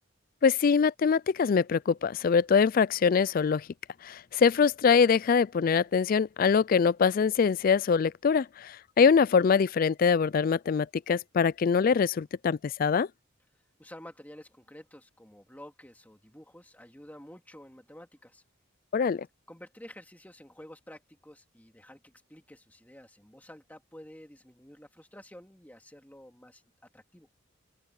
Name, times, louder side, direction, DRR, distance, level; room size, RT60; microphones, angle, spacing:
voice 1, 0.4-3.7 4.0-13.1 18.9-19.3, left 6 dB, 45° left, 0.3 m, -24 dB
voice 2, 13.8-18.4 19.5-26.6 26.9-27.3, left 1 dB, 10° left, 2.3 m, -50 dB
open air
head